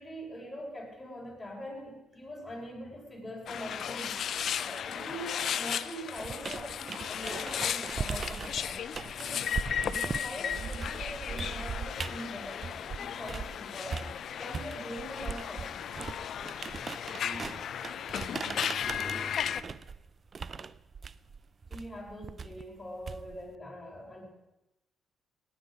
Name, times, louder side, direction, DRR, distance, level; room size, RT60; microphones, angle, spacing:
voice 1, 0.0-4.2 4.6-8.8 9.2-9.6 9.9-14.1 14.4-15.9 21.7-24.3, equal, 15° left, -3 dB, 5.4 m, -43 dB
sound 1, 3.5-19.6, left 8 dB, 65° left, 0.5 m, -35 dB
sound 2, 6.2-13.6 13.9-23.5, right 5 dB, 40° right, 0.5 m, -40 dB
voice 2, 17.2-17.6 18.4-19.6, right 1 dB, 25° right, -1 dB, 4.0 m, -45 dB
17.5 x 9.9 x 5.1 m, 0.96 s
cardioid pair, 90°, 0 cm